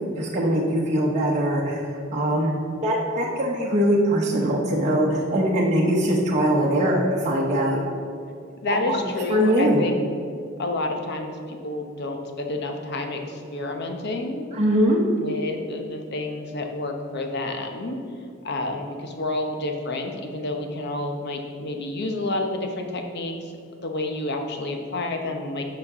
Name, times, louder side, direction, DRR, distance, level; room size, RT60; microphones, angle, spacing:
voice 1, 0.2-2.6 2.8-7.8 8.7-9.0 9.3-9.8 14.5-15.0, equal, 35° right, -4 dB, 0.9 m, -22 dB
voice 2, 8.6-10.0 10.6-14.5 15.2-18.0 18.4-23.4 23.8-25.6, left 2 dB, 55° left, 4 dB, 0.9 m, -29 dB
6.2 x 5.9 x 5.9 m, 2.4 s
head